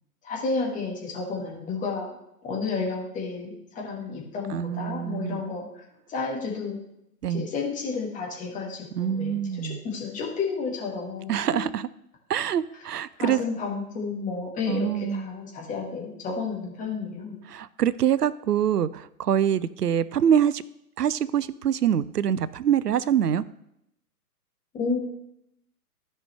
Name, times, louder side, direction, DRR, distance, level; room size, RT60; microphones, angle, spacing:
voice 1, 0.2-2.1 2.4-5.8 6.1-6.8 7.3-9.4 9.8-11.3 13.2-17.4 24.7-25.0, left 4 dB, 15° left, -1 dB, 1.7 m, -31 dB
voice 2, 4.5-5.4 7.2-7.5 9.0-9.8 11.3-11.9 12.3-13.4 14.7-15.3 17.5-20.6 21.0-23.4, right 9 dB, 85° right, 18 dB, 0.5 m, -25 dB
13.5 x 5.5 x 3.3 m, 0.80 s
figure-of-eight pair, 120°, 47 cm